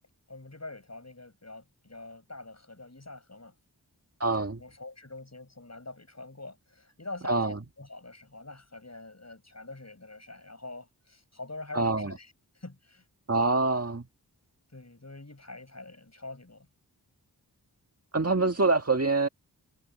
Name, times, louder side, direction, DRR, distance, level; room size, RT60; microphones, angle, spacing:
voice 1, 0.3-3.5 4.4-13.0 14.7-16.7, left 2 dB, 40° left, 7.9 m, -45 dB
voice 2, 4.2-4.6 7.3-7.6 11.7-12.1 13.3-14.0 18.1-19.3, right 3 dB, 35° right, 1.7 m, -25 dB
wide cardioid pair, 50°, 41 cm